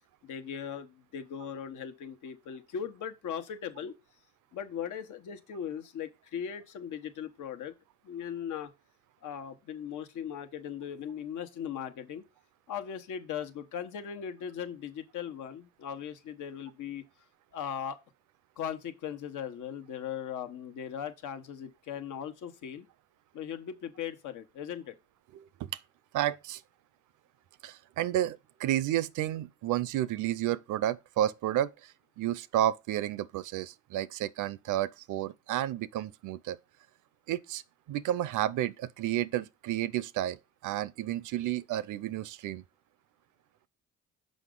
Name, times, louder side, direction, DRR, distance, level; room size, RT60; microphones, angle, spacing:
voice 1, 0.2-3.9 4.5-7.7 8.0-8.7 9.2-12.2 12.7-17.0 17.5-18.0 18.6-22.9 23.3-24.9, left 8 dB, 80° left, 1.2 m, -38 dB
voice 2, 25.3-25.7 26.1-26.6 27.6-31.7 32.2-36.6 37.3-37.6 37.9-42.6, right 13 dB, 85° right, 0.6 m, -31 dB
6.4 x 5.2 x 3.8 m
cardioid pair, 90°, 30 cm